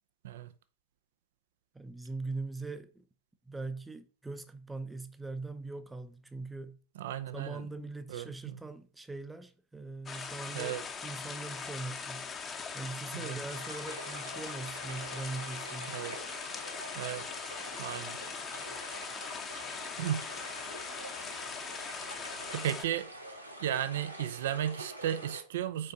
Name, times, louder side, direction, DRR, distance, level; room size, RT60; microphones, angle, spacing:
voice 1, 1.7-3.0 3.5-6.8 7.3-10.8 11.0-12.3 12.7-16.0, right 3 dB, 10° right, 0.7 m, -41 dB
voice 2, 7.0-7.7 8.1-8.3 10.5-10.8 13.1-13.4 15.9-16.2 17.0-17.2 17.8-18.2 20.0-20.2 22.5-23.1 23.6-25.9, right 11 dB, 55° right, 0.5 m, -34 dB
sound 1, 10.1-22.9, left 5 dB, 25° left, 0.8 m, -41 dB
sound 2, 13.5-25.4, right 1 dB, 85° right, 1.1 m, -46 dB
5.4 x 4.4 x 4.0 m
figure-of-eight pair, 90°, 0 cm